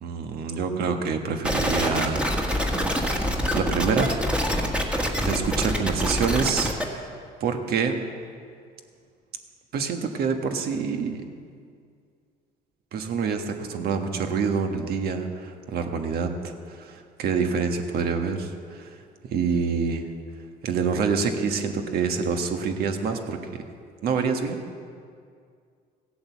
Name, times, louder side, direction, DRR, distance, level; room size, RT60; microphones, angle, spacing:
voice 1, 0.0-2.3 2.9-3.2 3.5-4.2 5.1-7.1 7.4-8.0 9.7-11.2 12.9-19.0 19.3-20.0 20.6-23.6 24.0-24.8, right 5 dB, 65° right, 5 dB, 1.4 m, -27 dB
sound 1, 1.4-6.8, equal, 5° right, 1.6 m, -25 dB
16.0 x 8.6 x 7.2 m, 2.2 s
cardioid pair, 110°, 17 cm